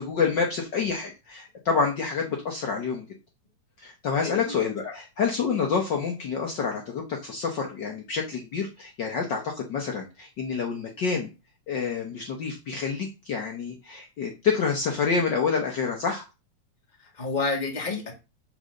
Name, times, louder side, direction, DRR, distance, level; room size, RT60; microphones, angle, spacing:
voice 1, 0.0-3.0 3.8-11.3 11.7-16.2, left 5 dB, 85° left, 1 dB, 0.9 m, -28 dB
voice 2, 4.2-4.5 4.8-4.9 17.0-18.1, left 4 dB, 25° left, 3 dB, 1.1 m, -30 dB
7.0 x 4.1 x 6.4 m, 0.28 s
omnidirectional pair, 3.8 m